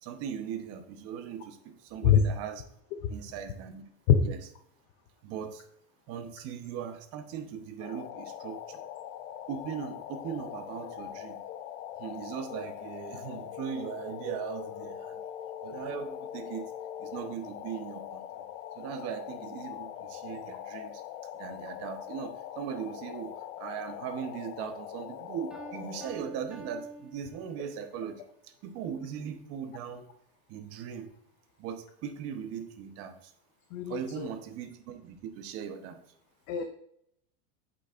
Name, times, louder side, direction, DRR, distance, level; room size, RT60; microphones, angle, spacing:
voice 1, 0.0-2.6 3.1-3.8 4.2-4.4 5.2-5.6 6.1-8.8 9.5-11.4 12.0-15.2 15.6-16.7 17.0-18.5 18.7-21.0 21.3-30.1 30.5-31.1 31.6-33.3 33.9-36.0, right 8 dB, 35° right, 6 dB, 0.9 m, -39 dB
sound 1, 7.8-26.1, left 11 dB, 75° left, 0.7 m, -42 dB
Piano, 25.5-28.0, right 3 dB, ahead, 0.8 m, -48 dB
voice 2, 33.7-34.3 36.5-36.6, left 9 dB, 35° left, 6 dB, 0.5 m, -23 dB
8.3 x 8.1 x 2.5 m, 0.71 s
supercardioid pair, 165°, 41 cm